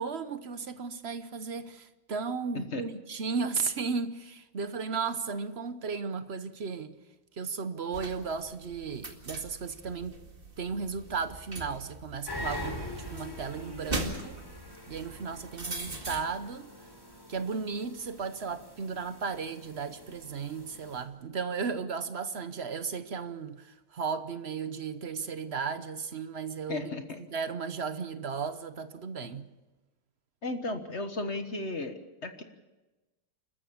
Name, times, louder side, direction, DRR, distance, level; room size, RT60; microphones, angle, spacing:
voice 1, 0.0-6.9 7.3-10.2 10.6-14.4 14.9-16.7 17.3-26.9 27.3-29.4, right 5 dB, 50° right, 0.8 m, -35 dB
sound 1, 7.9-16.2, right 2 dB, 25° right, 2.2 m, -41 dB
sound 2, 12.3-21.0, left 1 dB, 10° left, 3.5 m, -44 dB
voice 2, 26.7-27.2 29.2-29.3 30.4-32.4, left 2 dB, 35° left, 1.5 m, -35 dB
29.5 x 14.0 x 7.1 m
omnidirectional pair, 2.2 m